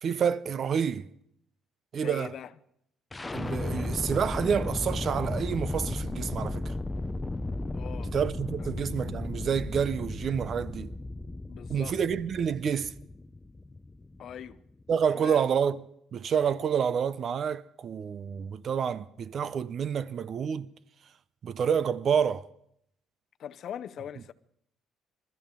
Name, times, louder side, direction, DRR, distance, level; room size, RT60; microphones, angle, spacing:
voice 1, 0.0-1.1 1.9-2.3 3.3-6.7 8.1-10.9 11.7-13.0 14.9-15.8 16.1-20.7 21.4-22.5, right 7 dB, 45° right, 0.6 m, -28 dB
voice 2, 1.9-2.5 7.7-8.1 8.6-8.7 11.5-12.0 14.2-14.6 15.1-15.4 23.4-24.3, left 9 dB, 55° left, 0.7 m, -41 dB
sound 1, 3.1-15.0, left 2 dB, 15° left, 0.6 m, -35 dB
26.5 x 13.5 x 3.8 m
cardioid pair, 110°, 0 cm